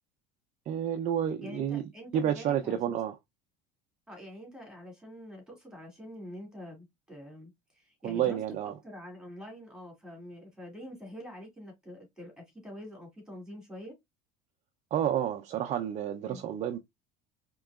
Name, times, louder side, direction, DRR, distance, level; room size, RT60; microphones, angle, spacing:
voice 1, 0.7-1.8 2.1-3.2 8.0-8.7 14.9-16.8, right 10 dB, 40° right, 0.5 m, -30 dB
voice 2, 1.4-3.0 4.1-8.4 8.8-13.9 16.2-16.4, equal, 5° right, 2.3 m, -46 dB
4.4 x 2.9 x 2.3 m
supercardioid pair, 115°, 18 cm